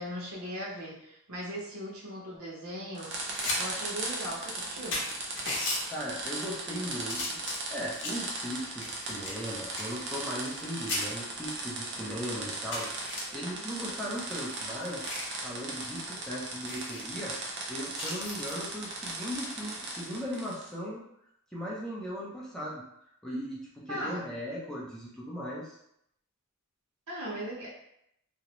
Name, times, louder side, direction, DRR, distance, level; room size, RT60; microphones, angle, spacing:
voice 1, 0.0-3.2 3.6-5.0 23.9-24.3 27.1-27.7, equal, 70° right, -5 dB, 0.9 m, -38 dB
sound 1, 3.0-20.7, right 2 dB, 50° right, 0.5 m, -38 dB
sound 2, 3.1-3.6 4.0-4.1 4.6-4.7 4.9-5.8 6.5-6.8 7.1-8.3 8.8-10.6 10.9-11.1 11.7-11.8 12.1-12.2 12.7-13.2 14.1-15.3 15.7-15.9 16.2-16.3 16.6-17.0 17.9-18.5 20.2-20.5, left 2 dB, 55° left, 0.7 m, -36 dB
voice 2, 5.9-7.4 7.7-17.4 17.7-21.0 21.5-22.8 23.2-25.8, equal, 5° left, -6 dB, 0.5 m, -38 dB
2.5 x 2.0 x 2.9 m, 0.75 s
head